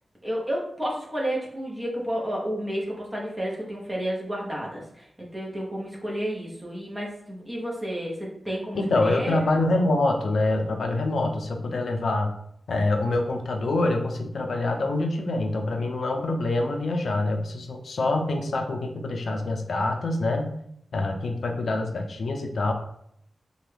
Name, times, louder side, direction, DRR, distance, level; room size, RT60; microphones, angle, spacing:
voice 1, 0.2-9.5, equal, 15° right, -3 dB, 0.7 m, -31 dB
voice 2, 8.7-12.3 12.7-20.6 20.9-22.7, left 2 dB, 70° left, 4 dB, 0.4 m, -25 dB
3.0 x 2.2 x 3.2 m, 0.71 s
wide cardioid pair, 170°, 0 cm